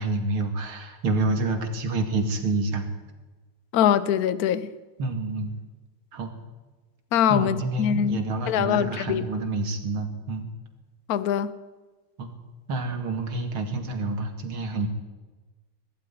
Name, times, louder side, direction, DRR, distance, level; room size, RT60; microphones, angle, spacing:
voice 1, 0.0-2.8 5.0-5.5 6.1-6.3 7.3-10.4 12.2-12.3 12.7-14.9, right 2 dB, 80° right, 3.2 m, -28 dB
voice 2, 3.7-4.7 7.1-9.2 11.1-11.5, left 9 dB, 55° left, 1.2 m, -23 dB
20.5 x 13.0 x 10.0 m
omnidirectional pair, 2.2 m